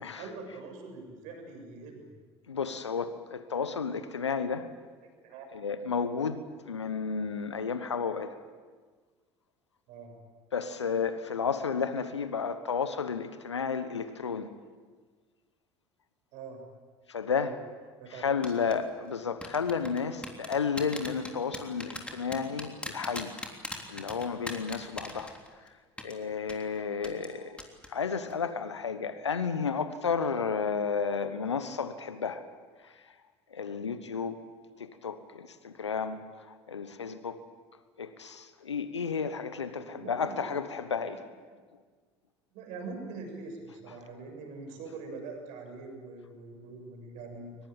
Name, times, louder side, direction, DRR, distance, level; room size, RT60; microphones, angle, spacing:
voice 1, 0.0-2.0 5.2-5.4 9.9-10.1 16.3-16.6 17.2-17.6 18.0-18.6 27.3-27.5 39.8-40.5 41.1-41.3 42.5-47.6, right 3 dB, 55° right, 3 dB, 6.8 m, -43 dB
voice 2, 2.5-4.7 5.5-8.4 10.5-14.5 17.1-17.6 18.1-23.3 23.9-25.4 26.0-27.6 27.9-32.4 32.8-32.9 33.5-34.4 34.8-36.2 36.5-37.4 38.0-41.2, left 6 dB, 80° left, 12 dB, 1.2 m, -32 dB
sound 1, 18.4-18.7 19.4-25.7 26.0-26.1 26.5-26.6 27.0-27.3 27.6-27.9 28.2-28.3, left 1 dB, 10° left, 3.4 m, -39 dB
23.0 x 20.5 x 8.9 m, 1.5 s
figure-of-eight pair, 65°, 14 cm